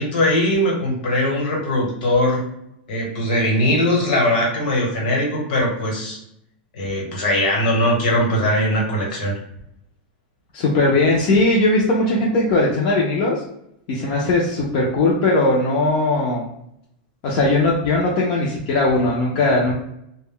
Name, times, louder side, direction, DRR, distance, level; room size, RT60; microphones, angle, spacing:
voice 1, 0.0-2.4 2.9-6.2 6.7-9.3, left 1 dB, 60° left, -1 dB, 1.1 m, -20 dB
voice 2, 10.5-13.4 13.9-16.5 17.2-19.7, left 2 dB, 35° left, -4 dB, 0.4 m, -19 dB
2.1 x 2.0 x 3.5 m, 0.77 s
supercardioid pair, 175°, 5 cm